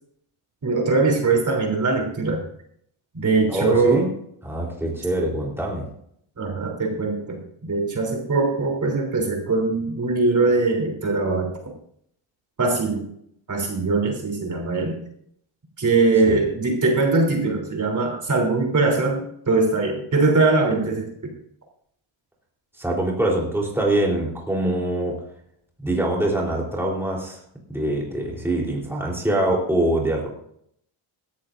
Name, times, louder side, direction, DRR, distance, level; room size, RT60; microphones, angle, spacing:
voice 1, 0.6-2.4 3.1-4.0 6.4-11.5 12.6-13.0 13.5-15.0 15.8-21.0, right 3 dB, 35° right, 1 dB, 3.4 m, -21 dB
voice 2, 3.5-4.1 4.4-5.9 16.3-16.4 22.8-25.2 25.8-27.4 27.7-30.3, right 1 dB, 5° right, -2 dB, 3.6 m, -24 dB
16.5 x 13.5 x 2.6 m, 0.69 s
wide cardioid pair, 140°, 50 cm